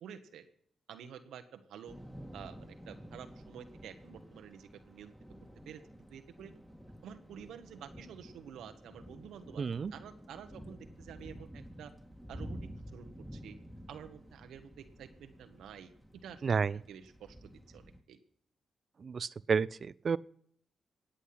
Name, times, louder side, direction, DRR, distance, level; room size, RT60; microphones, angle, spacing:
voice 1, 0.0-0.5 0.9-2.0 2.3-5.1 5.7-5.8 6.1-6.5 7.0-9.6 9.9-11.9 12.3-12.6 12.9-13.6 13.9-15.9 16.2-16.6 16.9-18.2, right 8 dB, 80° right, 7 dB, 1.1 m, -50 dB
Thunder / Rain, 1.9-18.0, equal, ahead, 2.2 m, -51 dB
voice 2, 9.6-9.9 16.4-16.7 19.0-20.2, right 5 dB, 55° right, 19 dB, 0.5 m, -31 dB
19.0 x 8.2 x 5.8 m, 0.66 s
supercardioid pair, 55°, 0 cm